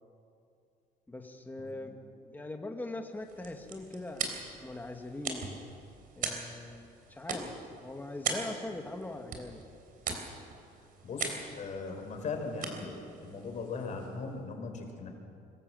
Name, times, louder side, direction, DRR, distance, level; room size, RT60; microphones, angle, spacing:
voice 1, 1.1-1.9 2.2-4.3 4.6-5.5 6.2-7.5 7.8-9.6, left 2 dB, 10° left, 4 dB, 1.8 m, -41 dB
voice 2, 1.6-1.9 11.0-15.1, left 4 dB, 45° left, 4 dB, 4.2 m, -39 dB
sound 1, 3.1-14.3, right 5 dB, 55° right, 3.5 m, -41 dB
24.5 x 13.5 x 7.7 m, 2.5 s
cardioid pair, 110°, 17 cm